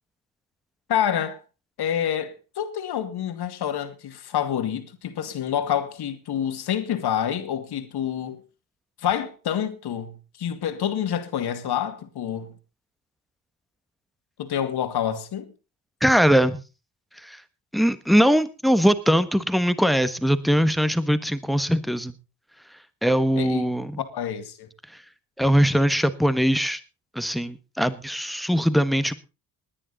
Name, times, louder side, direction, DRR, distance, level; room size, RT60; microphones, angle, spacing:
voice 1, 0.9-1.4 1.8-8.4 9.0-12.5 14.4-15.5 23.4-23.7 24.0-24.7, left 9 dB, 65° left, 2.3 m, -27 dB
voice 2, 16.0-16.6 17.2-17.4 17.7-22.1 23.0-24.0 24.9-25.0 25.4-26.8 27.1-29.1, equal, ahead, 1.4 m, -21 dB
19.5 x 10.0 x 4.1 m
cardioid pair, 85°, 42 cm